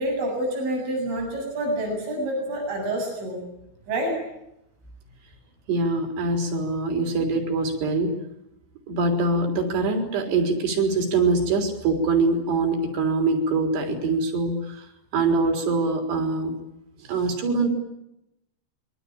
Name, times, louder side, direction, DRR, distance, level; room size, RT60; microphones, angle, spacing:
voice 1, 0.0-3.4 3.9-4.2, right 1 dB, 90° right, 2 dB, 10.5 m, -27 dB
voice 2, 5.7-8.2 8.9-14.9 15.1-16.5 17.1-17.7, right 3 dB, 60° right, 4 dB, 5.9 m, -23 dB
26.0 x 23.0 x 8.8 m, 0.84 s
omnidirectional pair, 5.5 m